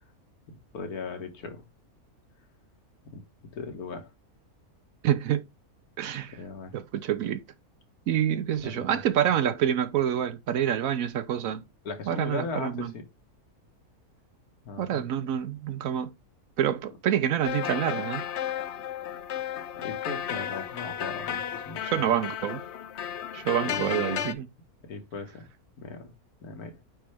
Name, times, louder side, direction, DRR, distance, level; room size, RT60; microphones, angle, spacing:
voice 1, 0.5-1.6 3.1-3.2 3.5-4.1 6.3-6.7 8.6-9.0 11.9-13.0 14.7-15.1 19.8-22.1 23.6-24.3 24.8-25.5 25.8-26.1 26.4-26.8, left 4 dB, 85° left, 1.8 m, -38 dB
voice 2, 5.0-5.4 6.0-6.4 6.7-7.4 8.1-11.6 12.1-12.9 14.8-16.1 16.6-18.2 21.8-22.6 23.3-24.5, right 10 dB, 70° right, 1.0 m, -27 dB
sound 1, 17.4-24.3, left 10 dB, 60° left, 0.8 m, -33 dB
9.1 x 3.3 x 3.2 m
omnidirectional pair, 1.6 m